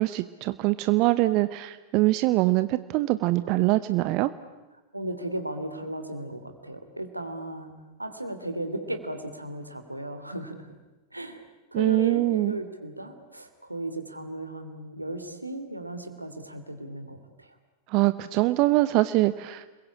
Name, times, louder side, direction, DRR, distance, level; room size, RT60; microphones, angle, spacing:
voice 1, 0.0-4.3 11.7-12.6 17.9-19.7, right 19 dB, 40° right, 13 dB, 0.9 m, -23 dB
voice 2, 4.9-7.7 8.0-10.7 11.1-11.4 11.7-17.5, right 1 dB, 85° right, 8 dB, 2.8 m, -36 dB
30.0 x 22.0 x 8.6 m, 1.1 s
figure-of-eight pair, 90°, 0 cm